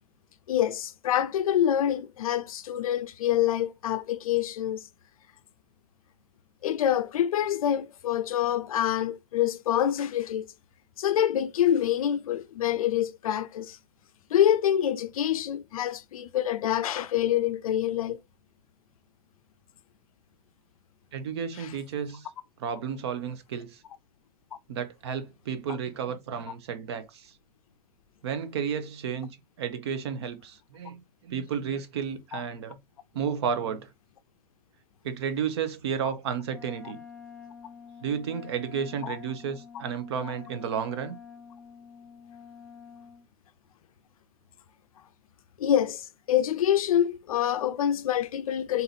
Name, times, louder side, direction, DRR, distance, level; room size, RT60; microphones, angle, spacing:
voice 1, 0.5-4.8 6.6-10.5 11.0-13.8 14.3-18.2 32.3-32.4 39.0-39.2 45.6-48.8, left 10 dB, 55° left, 0.5 m, -26 dB
voice 2, 21.1-22.3 22.6-23.8 24.7-27.3 28.2-29.3 29.6-32.8 33.1-33.9 35.0-37.0 38.0-41.2, right 7 dB, 40° right, 0.7 m, -32 dB
Wind instrument woodwind instrument, 36.5-43.3, left 7 dB, 5° left, 0.4 m, -47 dB
3.9 x 2.8 x 3.9 m
hypercardioid pair, 175°, 21 cm